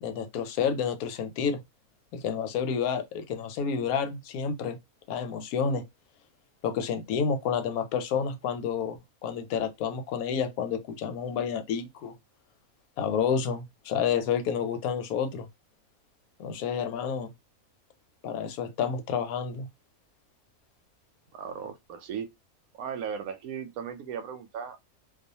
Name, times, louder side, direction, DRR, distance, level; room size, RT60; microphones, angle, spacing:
voice 1, 0.0-1.6 2.1-4.8 5.1-5.8 6.6-12.1 13.0-15.5 16.4-17.3 18.2-19.7, left 7 dB, 85° left, 1.1 m, -29 dB
voice 2, 21.3-22.3 22.7-24.8, right 7 dB, 80° right, 1.0 m, -37 dB
2.4 x 2.3 x 2.6 m
omnidirectional pair, 1.5 m